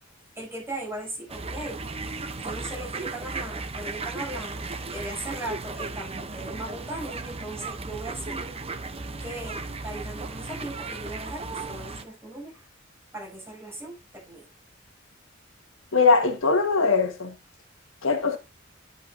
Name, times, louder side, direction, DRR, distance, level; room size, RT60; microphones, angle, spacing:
voice 1, 0.4-1.8 2.4-8.6 9.2-12.7 13.1-14.4, right 1 dB, 10° right, 7.2 m, -38 dB
sound 1, 1.3-12.0, right 3 dB, 30° right, 0.8 m, -35 dB
voice 2, 15.9-17.3 18.0-18.4, left 4 dB, 75° left, 1.6 m, -21 dB
11.0 x 8.2 x 2.7 m
head